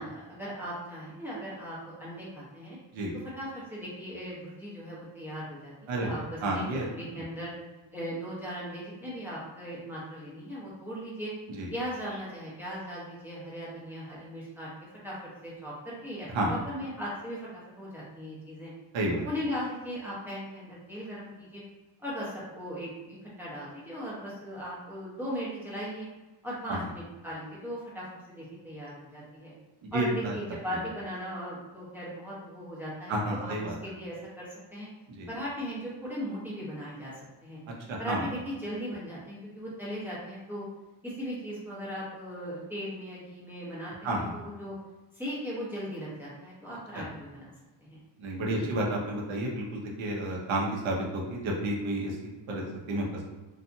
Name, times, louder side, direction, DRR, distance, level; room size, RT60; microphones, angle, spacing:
voice 1, 0.0-2.8 3.4-6.6 6.9-7.5 7.9-11.3 11.7-14.7 15.0-15.1 15.4-18.7 19.2-21.6 22.0-26.1 26.4-29.5 29.9-33.5 33.8-34.9 35.3-37.1 37.4-37.6 38.0-40.6 41.0-44.7 45.1-47.5 47.8-48.0 48.5-48.7, equal, 5° right, -8 dB, 0.8 m, -38 dB
voice 2, 5.9-6.8 11.5-11.7 16.3-16.5 18.9-19.2 26.7-26.8 29.9-30.3 33.1-33.8 35.2-35.3 37.9-38.2 44.0-44.3 46.9-47.0 48.2-52.2 52.5-53.3, right 1 dB, 80° right, -1 dB, 0.8 m, -31 dB
2.7 x 2.3 x 2.6 m, 1.1 s
wide cardioid pair, 145°, 46 cm